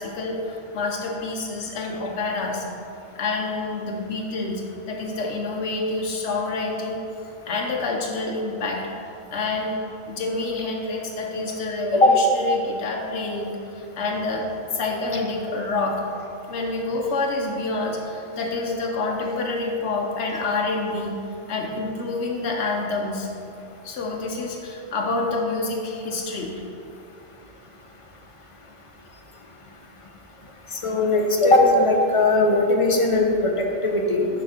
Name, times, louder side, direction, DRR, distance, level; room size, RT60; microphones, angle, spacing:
voice 1, 0.0-2.6 3.1-7.0 7.5-8.9 9.3-9.8 10.1-16.1 16.5-21.2 21.5-23.3 23.8-26.6, left 3 dB, 90° left, 0 dB, 1.1 m, -27 dB
voice 2, 30.8-34.3, left 2 dB, 35° left, 1 dB, 0.7 m, -19 dB
6.8 x 5.9 x 5.0 m, 2.6 s
omnidirectional pair, 1.1 m